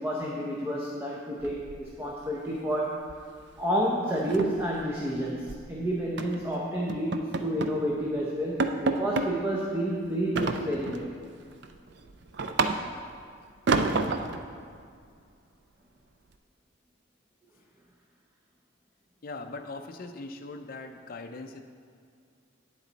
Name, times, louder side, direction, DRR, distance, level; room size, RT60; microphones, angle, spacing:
voice 1, 0.0-3.0 3.6-11.2, equal, 10° right, -3 dB, 0.7 m, -30 dB
sound 1, 1.4-2.2 2.5-2.8 3.1-3.3 3.6-3.7 4.1-5.7 6.2-6.4 6.9-7.8 8.2-8.3 8.6-9.3 10.4-11.1 11.5-13.1 13.7-14.4, right 3 dB, 55° right, 0.5 m, -29 dB
voice 2, 19.2-21.6, left 3 dB, 45° left, 4 dB, 0.5 m, -40 dB
9.2 x 7.3 x 4.0 m, 2.2 s
head